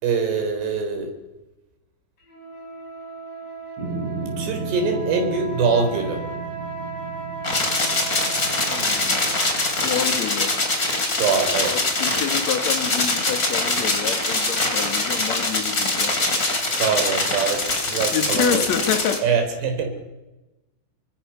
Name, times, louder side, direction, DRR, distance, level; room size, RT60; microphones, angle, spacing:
voice 1, 0.0-1.2 4.4-6.2 11.2-11.8 16.8-18.7 19.2-19.9, right 5 dB, 90° right, 6 dB, 5.8 m, -23 dB
sound 1, 2.2-12.0, right 5 dB, 80° left, 9.1 m, -37 dB
sound 2, 3.8-10.2, right 3 dB, 65° right, 6.0 m, -34 dB
sound 3, 7.4-19.2, left 2 dB, 25° left, 3.2 m, -23 dB
voice 2, 8.7-9.3 9.8-10.6 11.7-16.2 18.1-19.3, left 9 dB, 55° left, 8 dB, 2.4 m, -28 dB
28.0 x 24.0 x 5.8 m, 1.1 s
omnidirectional pair, 4.7 m